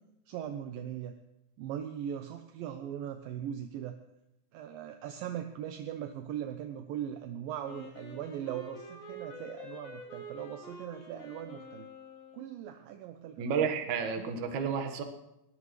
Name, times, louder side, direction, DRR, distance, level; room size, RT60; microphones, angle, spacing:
voice 1, 0.3-1.1 1.6-4.0 4.5-11.9 12.3-13.4 14.2-14.3, right 10 dB, 75° right, 6 dB, 2.1 m, -39 dB
Wind instrument woodwind instrument, 7.6-12.7, left 1 dB, 60° left, 4.1 m, -47 dB
voice 2, 13.4-15.0, right 6 dB, 60° right, 5 dB, 2.4 m, -31 dB
21.0 x 18.0 x 3.2 m, 0.88 s
omnidirectional pair, 4.9 m